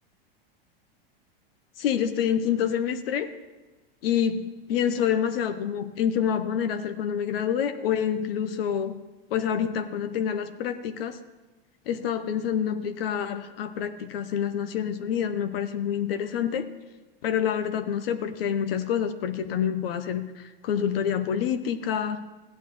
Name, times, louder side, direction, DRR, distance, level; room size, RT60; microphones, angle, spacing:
voice 1, 1.8-3.3 4.0-9.0 9.3-11.2 11.9-16.7 17.2-22.2, left 8 dB, 75° left, 9 dB, 0.9 m, -27 dB
16.0 x 9.2 x 3.1 m, 1.2 s
supercardioid pair, 125°, 29 cm